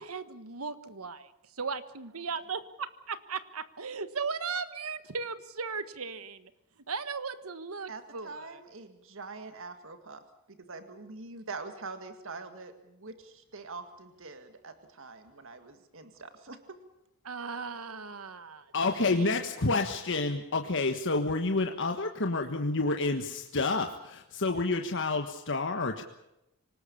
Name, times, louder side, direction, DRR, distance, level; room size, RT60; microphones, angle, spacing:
voice 1, 0.0-2.6 3.1-6.5 6.9-8.6 17.2-18.7 19.0-19.3, right 5 dB, 90° right, 12 dB, 1.5 m, -37 dB
voice 2, 7.9-10.2 10.5-16.8, right 3 dB, 65° right, 8 dB, 2.0 m, -44 dB
voice 3, 18.7-26.0, left 3 dB, 60° left, 5 dB, 1.5 m, -29 dB
25.5 x 19.0 x 7.1 m, 0.87 s
head